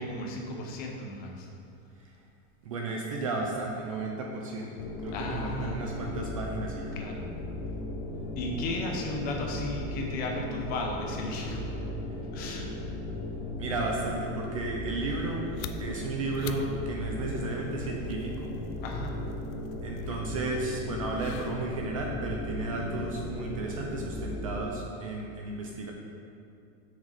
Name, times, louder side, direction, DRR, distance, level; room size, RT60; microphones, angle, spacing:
voice 1, 0.0-1.5 5.1-6.3 6.9-7.3 8.4-11.7 12.3-12.7 18.8-19.2, left 1 dB, 20° left, 1 dB, 0.7 m, -35 dB
voice 2, 2.6-4.7 5.0-7.0 13.6-15.5 15.8-18.5 19.8-25.9, right 3 dB, 30° right, 0 dB, 0.3 m, -33 dB
sound 1, 4.8-24.6, left 2 dB, 50° left, 1.0 m, -37 dB
sound 2, 8.1-13.6, right 6 dB, 85° right, 1.1 m, -52 dB
sound 3, 15.2-24.4, left 9 dB, 75° left, 0.6 m, -49 dB
7.2 x 6.5 x 4.9 m, 2.5 s
supercardioid pair, 175°, 42 cm